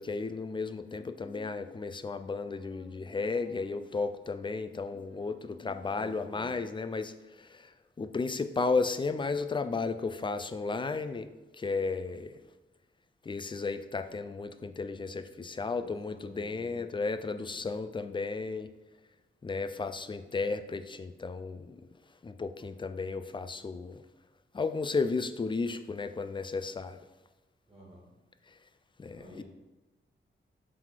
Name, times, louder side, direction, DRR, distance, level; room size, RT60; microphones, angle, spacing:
voice 1, 0.0-7.7 8.0-11.3 11.6-12.3 13.3-18.7 19.4-21.8 22.2-24.0 24.5-27.0 29.0-29.4, left 4 dB, 25° left, 10 dB, 0.4 m, -34 dB
Human voice, 0.9-1.9 2.4-4.0 4.9-6.1, left 2 dB, 10° left, 2.0 m, -56 dB
voice 2, 5.9-6.6 15.4-16.9 17.3-17.7 27.7-28.1 29.1-29.4, equal, 30° right, -4 dB, 2.4 m, -53 dB
7.5 x 4.2 x 4.6 m, 1.1 s
wide cardioid pair, 155°, 20 cm